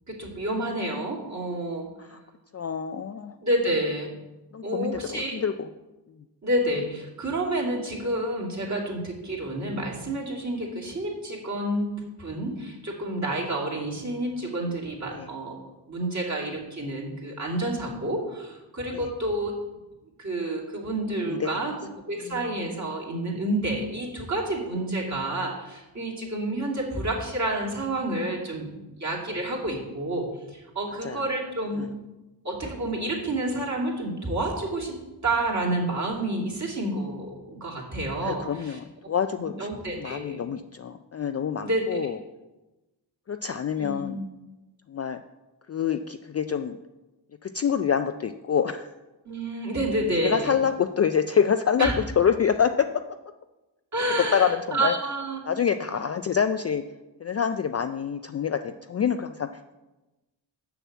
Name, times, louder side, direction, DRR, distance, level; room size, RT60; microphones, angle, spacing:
voice 1, 0.1-1.8 3.4-4.1 4.6-5.4 6.4-11.9 12.2-15.6 15.9-19.5 20.2-21.7 22.1-31.8 32.4-35.0 35.2-38.8 39.4-40.5 41.6-42.0 43.8-44.2 49.2-50.5 51.8-51.9 53.9-55.4, right 1 dB, 35° right, -3 dB, 2.7 m, -29 dB
voice 2, 2.5-3.3 4.5-5.7 15.1-15.3 18.9-19.1 21.3-21.7 22.2-22.4 31.0-31.2 31.7-31.9 38.2-39.7 39.9-42.2 43.3-44.2 44.9-45.2 45.7-46.8 47.4-48.9 50.2-52.9 54.2-55.0 55.4-56.8 57.2-59.5, left 7 dB, 35° left, 8 dB, 0.4 m, -26 dB
6.8 x 6.1 x 7.2 m, 1.1 s
cardioid pair, 80°, 47 cm